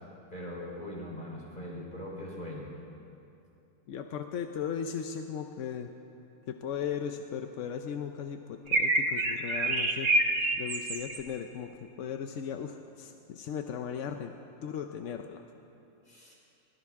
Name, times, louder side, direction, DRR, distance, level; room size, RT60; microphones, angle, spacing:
voice 1, 0.3-2.7 16.1-16.3, left 1 dB, 25° left, -3 dB, 4.0 m, -41 dB
voice 2, 3.9-5.9 6.5-10.1 10.6-15.4, left 7 dB, 65° left, 6 dB, 0.8 m, -37 dB
sound 1, 8.7-11.2, right 2 dB, 45° right, 1.2 m, -27 dB
21.5 x 18.0 x 3.6 m, 2.7 s
omnidirectional pair, 1.9 m